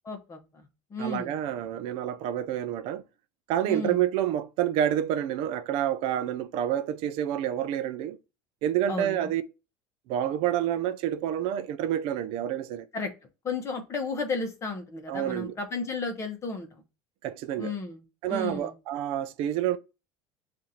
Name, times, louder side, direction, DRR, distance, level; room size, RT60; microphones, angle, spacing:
voice 1, 0.0-1.3 3.6-4.0 8.9-9.3 12.9-13.1 13.4-16.8 17.6-18.0 18.3-18.7, left 3 dB, 25° left, 0.9 m, -33 dB
voice 2, 1.0-3.0 3.5-8.2 8.6-9.4 10.1-12.9 15.1-15.6 17.2-17.7 18.2-19.8, right 11 dB, 55° right, 0.4 m, -28 dB
7.1 x 2.5 x 2.8 m
cardioid pair, 145°, 12 cm